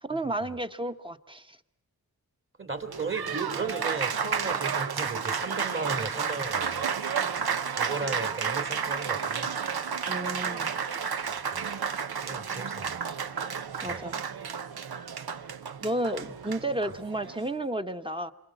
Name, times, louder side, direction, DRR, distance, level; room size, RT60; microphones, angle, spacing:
voice 1, 0.0-1.6 7.2-7.5 10.1-10.7 13.8-14.2 15.8-18.3, right 1 dB, 15° right, 8 dB, 1.2 m, -32 dB
voice 2, 2.6-6.9 7.8-9.5 11.3-11.7 12.2-13.0 13.8-14.0, right 4 dB, 35° right, 8 dB, 3.1 m, -35 dB
Applause, 2.8-17.5, right 6 dB, 90° right, 1.0 m, -32 dB
27.5 x 25.0 x 7.8 m, 0.72 s
wide cardioid pair, 100°, 36 cm